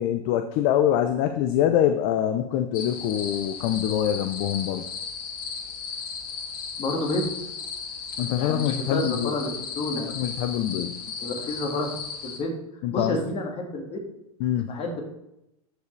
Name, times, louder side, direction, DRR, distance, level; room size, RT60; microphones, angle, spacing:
voice 1, 0.0-4.8 8.2-9.4 10.0-11.0 12.8-13.2 14.4-14.8, left 10 dB, 45° left, 7 dB, 0.6 m, -24 dB
sound 1, 2.7-12.4, left 5 dB, 70° left, 1.7 m, -35 dB
voice 2, 6.8-7.3 8.4-9.5 9.8-10.1 11.2-11.9 12.2-12.5 12.9-14.0 14.7-15.0, left 2 dB, 30° left, 1 dB, 1.9 m, -29 dB
12.0 x 4.8 x 3.3 m, 0.85 s
hypercardioid pair, 130°, 20 cm